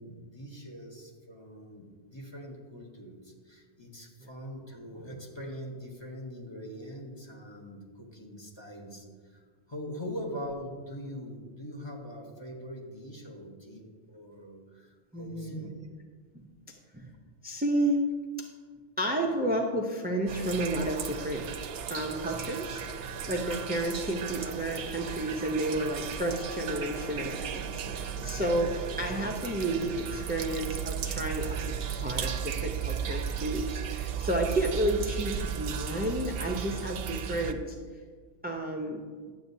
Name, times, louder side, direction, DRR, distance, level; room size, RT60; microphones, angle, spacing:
voice 1, 0.0-15.7, equal, 25° left, -1 dB, 1.1 m, -42 dB
voice 2, 15.1-15.7 16.9-17.1 17.4-18.0 19.0-21.4 21.9-27.6 27.9-33.7 33.9-37.8 38.4-39.0, right 1 dB, 15° right, 0 dB, 0.4 m, -31 dB
sound 1, 20.3-37.5, right 7 dB, 65° right, 0.7 m, -35 dB
11.0 x 7.5 x 2.7 m, 1.5 s
omnidirectional pair, 1.2 m